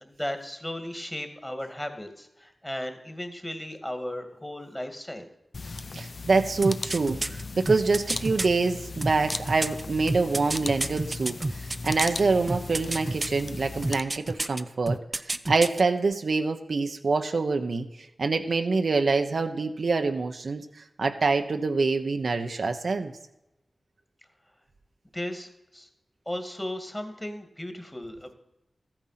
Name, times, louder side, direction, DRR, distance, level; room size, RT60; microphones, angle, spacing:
voice 1, 0.0-5.3 25.1-25.9 26.3-28.3, left 1 dB, 15° left, 7 dB, 2.2 m, -36 dB
sound 1, 5.5-14.0, left 3 dB, 60° left, 0.7 m, -37 dB
voice 2, 5.9-20.6 21.0-23.1, right 4 dB, 75° right, 6 dB, 1.0 m, -26 dB
sound 2, 6.6-8.5 9.0-12.2 12.5-13.4 13.8-14.6 14.9-15.8 16.1-16.2, right 2 dB, 35° right, 0.6 m, -29 dB
14.0 x 9.0 x 5.9 m, 0.90 s
cardioid pair, 55°, 0 cm